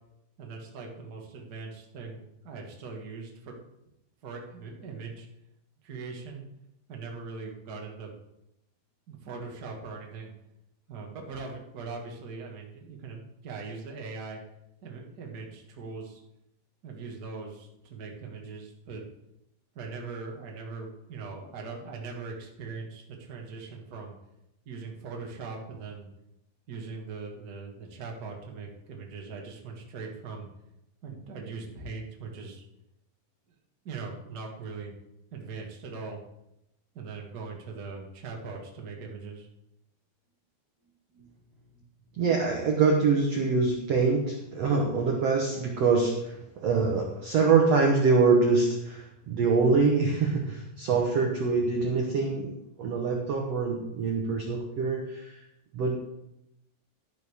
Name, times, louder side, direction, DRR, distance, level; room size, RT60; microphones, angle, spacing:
voice 1, 0.4-3.6 4.2-5.3 5.8-6.4 6.9-8.1 9.1-10.3 10.9-14.4 14.8-16.2 16.8-19.0 19.7-24.1 24.6-26.1 26.7-30.5 31.0-32.6 33.8-34.9 35.3-36.2 36.9-39.5 41.1-41.3, right 4 dB, 40° right, 0 dB, 1.5 m, -40 dB
voice 2, 42.2-52.5 52.8-55.3 55.7-55.9, right 4 dB, 60° right, 0 dB, 1.8 m, -24 dB
11.5 x 11.0 x 3.6 m, 0.85 s
omnidirectional pair, 4.3 m